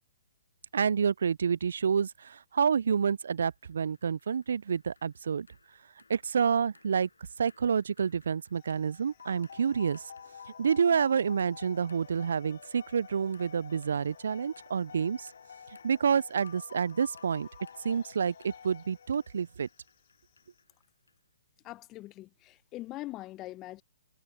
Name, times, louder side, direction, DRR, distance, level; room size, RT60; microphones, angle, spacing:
voice 1, 0.7-5.5 6.1-7.1 7.4-10.0 10.6-15.3 15.8-17.5 17.8-19.7, right 6 dB, 65° right, 0.3 m, -28 dB
sound 1, 3.5-21.3, left 4 dB, 80° left, 6.0 m, -64 dB
sound 2, 8.5-20.6, left 16 dB, 40° left, 3.1 m, -69 dB
sound 3, 9.2-19.6, left 7 dB, 65° left, 4.3 m, -50 dB
voice 2, 21.6-23.8, left 17 dB, 25° left, 0.9 m, -42 dB
figure-of-eight pair, 130°, 0 cm